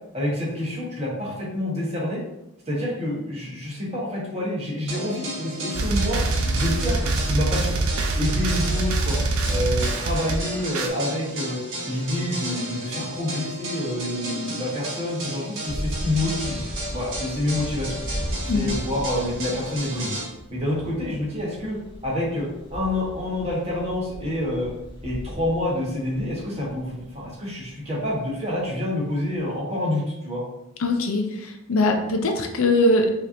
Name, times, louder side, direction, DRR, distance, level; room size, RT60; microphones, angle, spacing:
voice 1, 0.1-2.2 2.7-6.2 6.5-7.8 8.2-9.2 9.5-11.6 11.9-16.6 16.9-17.9 18.5-20.1 20.5-24.7 25.0-30.4, left 1 dB, 30° right, -5 dB, 1.4 m, -27 dB
sound 1, 4.9-20.2, right 1 dB, 60° right, 1.3 m, -34 dB
sound 2, 5.7-10.9, right 2 dB, 80° right, 0.6 m, -24 dB
sound 3, 15.7-29.6, equal, 25° left, 1.0 m, -36 dB
voice 2, 30.8-33.1, left 2 dB, 75° left, 4 dB, 0.5 m, -21 dB
5.0 x 3.0 x 2.7 m, 0.88 s
head